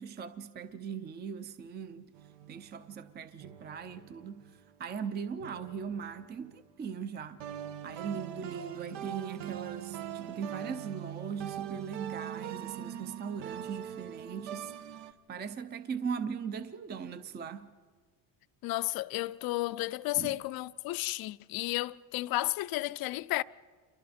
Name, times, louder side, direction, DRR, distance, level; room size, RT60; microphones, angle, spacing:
voice 1, 0.0-2.1 2.5-4.5 4.8-7.4 7.8-17.7 20.2-20.4, right 6 dB, 25° right, 0.6 m, -39 dB
sound 1, 2.1-4.7 5.4-6.9 7.4-15.1, right 10 dB, 80° right, 1.2 m, -42 dB
voice 2, 18.6-23.4, left 19 dB, 60° left, 0.6 m, -33 dB
28.5 x 23.5 x 4.3 m
cardioid pair, 120°, 41 cm